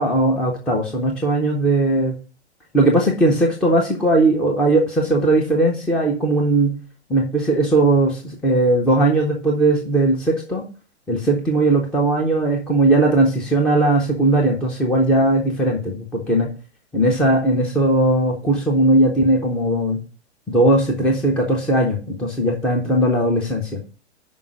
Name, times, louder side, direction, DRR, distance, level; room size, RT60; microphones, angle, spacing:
voice 1, 0.0-2.1 2.7-6.7 7.1-10.7 11.1-16.5 16.9-20.0 20.5-23.8, right 2 dB, 5° left, 0 dB, 0.4 m, -18 dB
5.3 x 5.3 x 6.1 m, 0.35 s
figure-of-eight pair, 110°, 34 cm